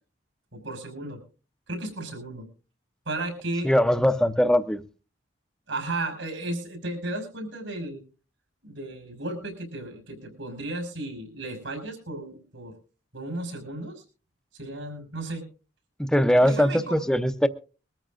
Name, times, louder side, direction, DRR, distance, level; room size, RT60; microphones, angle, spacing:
voice 1, 0.5-1.2 1.7-2.4 3.1-3.7 5.7-8.0 8.6-12.7 13.1-14.0 14.6-15.4 16.4-17.0, right 2 dB, 80° right, 5.8 m, -34 dB
voice 2, 3.6-4.8 16.0-17.5, equal, 5° left, 0.7 m, -21 dB
23.0 x 14.0 x 2.5 m
head